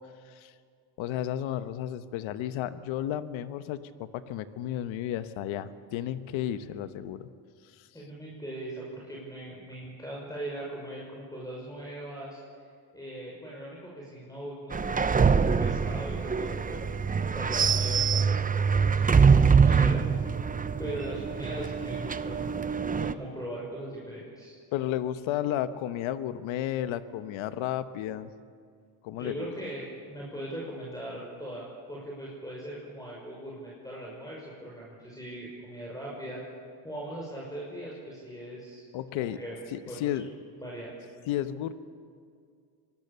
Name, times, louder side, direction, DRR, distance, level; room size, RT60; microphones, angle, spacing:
voice 1, 1.0-7.3 24.7-28.3 29.0-29.5 38.9-39.4 39.7-40.3 41.3-41.7, left 11 dB, 75° left, 12 dB, 1.3 m, -32 dB
voice 2, 7.9-12.4 12.9-20.0 20.8-24.6 29.2-36.4 36.8-38.8 39.1-39.6 39.9-40.2 40.6-40.9, right 1 dB, 5° left, -4 dB, 6.1 m, -40 dB
sound 1, 14.7-23.1, right 5 dB, 15° right, 0.7 m, -24 dB
25.5 x 19.5 x 6.9 m, 2.2 s
supercardioid pair, 90°, 48 cm